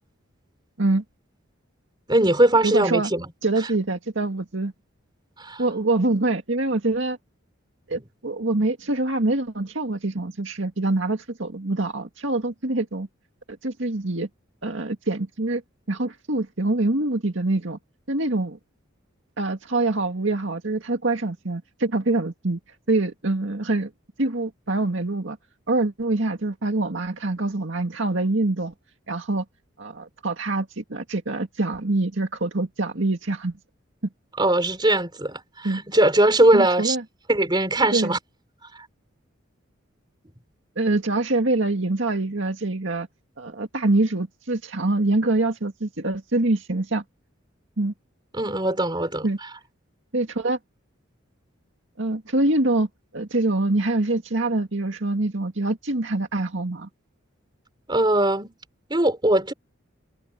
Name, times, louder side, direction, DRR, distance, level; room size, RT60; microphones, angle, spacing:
voice 1, 2.1-3.3 5.4-5.6 34.4-37.0 37.3-38.2 48.3-49.3 57.9-58.5 58.9-59.5, right 1 dB, 20° right, 4.3 m, -20 dB
voice 2, 2.6-3.1 3.4-4.7 5.6-7.2 7.9-13.1 13.6-14.3 14.6-15.6 15.9-17.8 18.1-18.6 19.4-22.6 22.9-23.9 24.2-25.4 25.7-28.7 29.1-29.4 29.8-33.5 35.6-35.8 36.5-37.0 37.9-38.1 40.8-43.1 43.4-47.0 47.8-47.9 49.2-49.4 50.1-50.6 52.0-52.9 53.1-56.9, right 2 dB, 65° right, 2.1 m, -25 dB
head